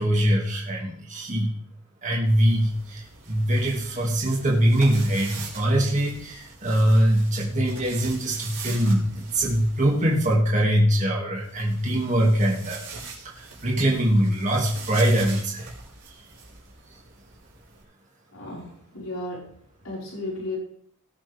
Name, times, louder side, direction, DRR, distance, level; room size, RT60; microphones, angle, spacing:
voice 1, 0.0-1.5 2.0-15.7 16.1-16.2 16.9-17.0, right 1 dB, 35° right, -2 dB, 2.5 m, -23 dB
sound 1, 2.2-10.4 11.4-17.8, right 4 dB, 70° right, 5.0 m, -43 dB
voice 2, 18.3-19.5 19.8-20.6, left 2 dB, 80° left, -4 dB, 5.5 m, -34 dB
19.0 x 8.7 x 3.6 m, 0.62 s
head